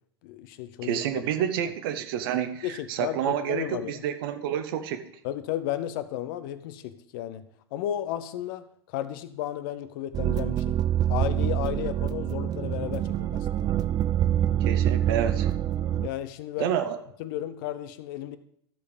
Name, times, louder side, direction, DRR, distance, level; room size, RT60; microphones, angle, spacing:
voice 1, 0.2-1.2 2.6-4.0 5.2-7.4 7.7-10.8 11.1-13.7 16.0-16.7 17.2-18.4, left 12 dB, 55° left, 11 dB, 0.8 m, -33 dB
voice 2, 0.8-5.1 14.6-15.5 16.6-17.0, right 9 dB, 60° right, 8 dB, 1.1 m, -29 dB
sound 1, 10.1-16.1, right 11 dB, 30° right, 0.5 m, -26 dB
14.0 x 5.0 x 5.1 m, 0.72 s
figure-of-eight pair, 90°, 14 cm